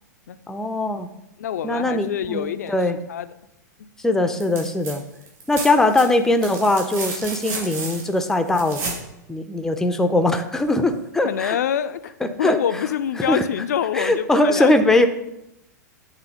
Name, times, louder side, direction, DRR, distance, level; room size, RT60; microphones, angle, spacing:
voice 1, 0.5-1.1 1.6-3.0 4.0-5.0 5.5-8.8 9.3-11.6 12.2-12.6 13.2-13.4 13.9-15.1, left 2 dB, 5° left, 7 dB, 0.5 m, -20 dB
voice 2, 1.4-2.8 3.1-3.3 3.8-3.9 11.2-14.7, left 9 dB, 60° left, 12 dB, 0.4 m, -26 dB
sound 1, 4.3-5.0 5.2-9.0 10.7-10.8, right 3 dB, 40° right, 2.7 m, -32 dB
8.2 x 3.4 x 5.0 m, 0.84 s
figure-of-eight pair, 100°, 10 cm